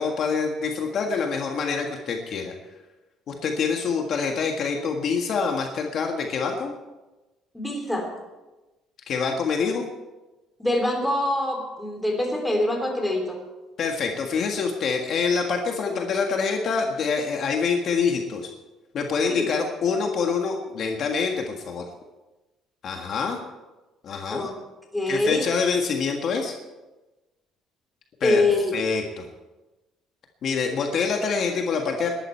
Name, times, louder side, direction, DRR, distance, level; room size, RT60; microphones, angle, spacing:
voice 1, 0.0-2.5 3.3-6.7 9.1-9.9 13.8-18.5 18.9-21.8 22.8-23.4 24.0-24.5 25.1-26.5 28.2-28.4 28.7-29.3 30.4-32.1, left 5 dB, 45° left, 2 dB, 1.6 m, -26 dB
voice 2, 7.5-8.1 10.6-13.4 19.3-19.5 24.3-24.5 24.9-25.5 28.2-28.8, left 2 dB, 5° left, 2 dB, 3.1 m, -24 dB
20.0 x 12.0 x 4.5 m, 1.1 s
cardioid pair, 150°, 0 cm